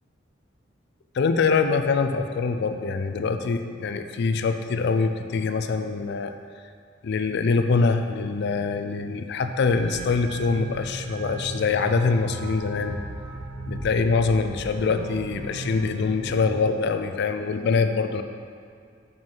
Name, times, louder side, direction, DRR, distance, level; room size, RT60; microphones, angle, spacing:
voice 1, 1.1-6.3 7.0-13.0 13.7-18.2, left 4 dB, 60° left, 8 dB, 0.4 m, -24 dB
sound 1, 9.7-16.6, right 2 dB, 45° right, 0.8 m, -36 dB
5.4 x 5.2 x 5.8 m, 2.2 s
head